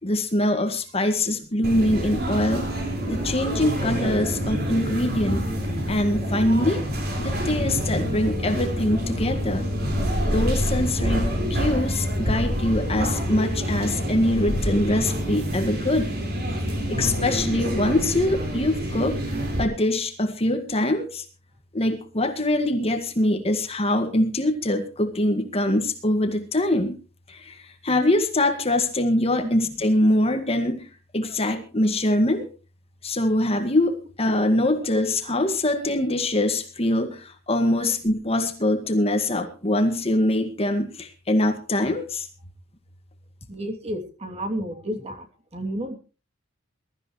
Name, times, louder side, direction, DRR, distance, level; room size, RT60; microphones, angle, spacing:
voice 1, 0.0-2.7 3.1-5.5 5.9-6.8 7.2-9.7 10.3-16.1 16.7-19.2 19.6-21.3 21.7-27.0 27.3-30.9 31.1-32.4 33.0-42.3, left 1 dB, 30° left, 7 dB, 1.9 m, -23 dB
sound 1, 1.6-19.6, equal, 50° right, 5.0 m, -27 dB
voice 2, 43.5-45.3 45.5-46.0, equal, 30° right, 3 dB, 2.9 m, -31 dB
21.5 x 13.5 x 3.2 m, 0.34 s
head